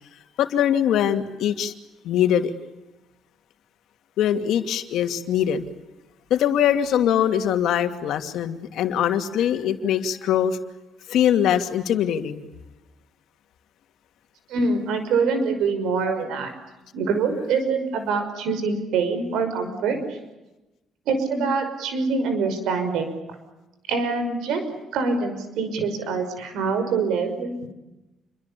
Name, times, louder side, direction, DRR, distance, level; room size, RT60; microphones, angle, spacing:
voice 1, 0.4-1.7 2.0-2.5 4.2-5.7 6.3-10.6 11.1-12.4, left 10 dB, 75° left, 7 dB, 2.6 m, -22 dB
voice 2, 14.5-16.5 16.9-20.2 21.1-23.2 23.9-24.6 24.9-27.5, right 4 dB, 90° right, 8 dB, 5.7 m, -24 dB
29.0 x 23.5 x 8.5 m, 1.0 s
cardioid pair, 145°, 0 cm